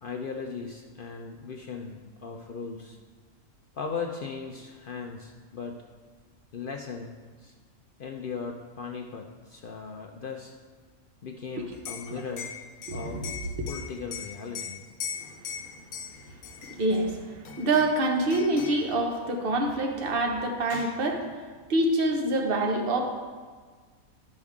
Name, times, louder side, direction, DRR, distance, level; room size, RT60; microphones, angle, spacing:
voice 1, 0.0-3.0 3.7-5.8 6.5-7.5 8.0-10.5 11.2-12.5 12.9-13.3 13.7-14.8, left 5 dB, 60° left, 2 dB, 0.5 m, -38 dB
Liquid, 11.7-17.0 17.5-18.0 18.3-18.9 20.1-20.2 20.4-21.0, left 7 dB, 85° left, 1.2 m, -40 dB
voice 2, 12.9-13.7 16.6-21.3 21.7-23.0, right 2 dB, 45° right, 2 dB, 1.1 m, -26 dB
12.0 x 5.3 x 3.6 m, 1.5 s
omnidirectional pair, 1.5 m